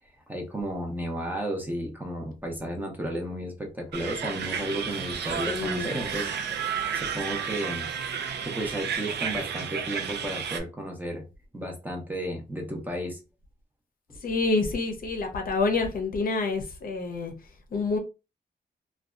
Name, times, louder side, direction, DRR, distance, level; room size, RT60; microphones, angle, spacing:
voice 1, 0.3-6.7 6.9-7.9 8.4-11.2 11.5-13.2, right 1 dB, 10° right, 0.6 m, -33 dB
sound 1, 3.9-10.6, right 7 dB, 70° right, 0.4 m, -32 dB
voice 2, 5.5-5.9 14.2-17.3 17.7-18.0, left 3 dB, 55° left, 0.6 m, -27 dB
2.6 x 2.2 x 2.3 m
wide cardioid pair, 145°, 18 cm